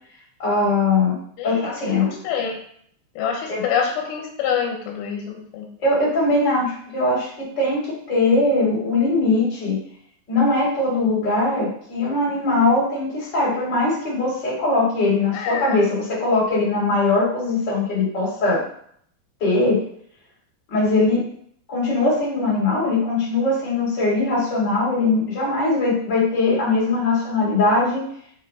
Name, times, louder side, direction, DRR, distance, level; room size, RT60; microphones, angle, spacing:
voice 1, 0.4-1.1 1.4-2.1 3.5-3.6 5.8-9.8 10.3-18.6 19.4-19.8 20.7-21.2 21.7-28.0, left 2 dB, 30° left, -6 dB, 2.1 m, -21 dB
voice 2, 1.4-2.6 3.2-5.2 5.5-5.7 15.3-15.8, left 7 dB, 90° left, 1 dB, 3.5 m, -26 dB
8.4 x 3.0 x 4.1 m, 0.64 s
omnidirectional pair, 5.4 m